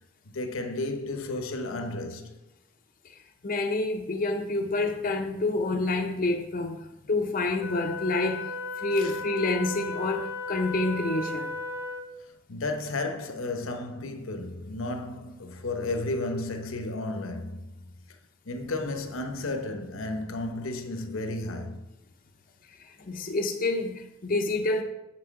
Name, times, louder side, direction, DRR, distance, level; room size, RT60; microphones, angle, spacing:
voice 1, 0.3-2.4 9.0-9.2 12.5-17.9 18.5-21.9, left 2 dB, 80° left, 0.8 m, -33 dB
voice 2, 3.4-11.5 22.8-24.8, left 2 dB, 40° left, 0.5 m, -28 dB
Wind instrument woodwind instrument, 7.6-12.2, left 3 dB, 15° right, 0.7 m, -35 dB
6.6 x 6.0 x 4.6 m
head